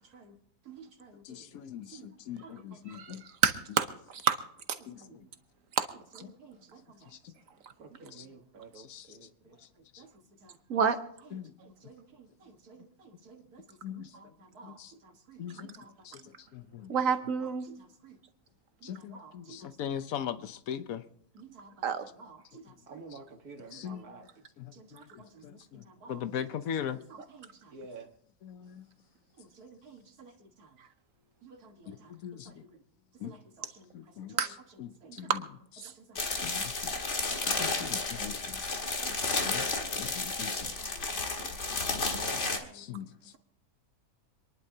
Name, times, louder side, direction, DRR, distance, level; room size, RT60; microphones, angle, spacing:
voice 1, 0.0-1.6 1.9-2.1 2.4-3.1 4.8-5.3 5.9-7.2 7.8-10.9 11.3-16.3 16.9-17.1 17.4-18.2 18.8-20.0 21.3-24.3 24.7-28.1 29.3-30.8 31.4-32.8 33.1-35.3 35.8-38.4 38.8-40.0 40.6-42.9 43.2-43.4, right 4 dB, 80° right, 2.0 m, -53 dB
voice 2, 1.2-3.2 4.9-5.0 7.1-7.3 8.1-8.3 8.7-9.2 9.9-10.0 11.3-11.5 13.8-14.3 14.6-14.9 15.4-15.7 16.0-16.9 18.8-21.0 23.7-24.0 24.6-27.0 28.4-28.9 31.9-32.6 33.2-33.3 33.9-34.3 34.8-35.4 36.4-36.9 37.6-38.6 39.3-39.6 40.0-41.0 42.3-42.4 42.7-43.3, left 9 dB, 70° left, 1.2 m, -40 dB
voice 3, 3.4-3.9 4.1-4.4 5.8-5.9 10.7-11.0 16.9-17.7 21.8-22.0 34.4-34.5 35.3-35.4 35.8-35.9, right 7 dB, 65° right, 1.3 m, -27 dB
sound 1, 36.2-42.6, left 3 dB, 50° left, 2.0 m, -32 dB
26.5 x 11.0 x 2.8 m
omnidirectional pair, 1.6 m